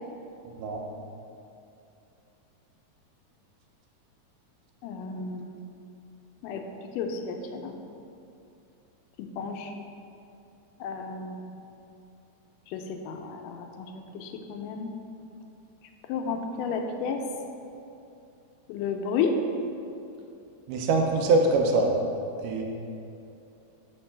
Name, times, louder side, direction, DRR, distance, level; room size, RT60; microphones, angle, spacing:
voice 1, 0.5-0.8 20.7-21.9 22.4-22.6, right 3 dB, 85° right, 2 dB, 2.2 m, -23 dB
voice 2, 4.8-5.7 6.4-6.6 7.0-7.7 9.2-9.7 10.8-11.6 12.7-14.9 16.1-17.2 18.7-19.4, left 5 dB, 85° left, 4 dB, 2.1 m, -32 dB
5.2 x 4.3 x 5.6 m, 2.7 s
omnidirectional pair, 3.7 m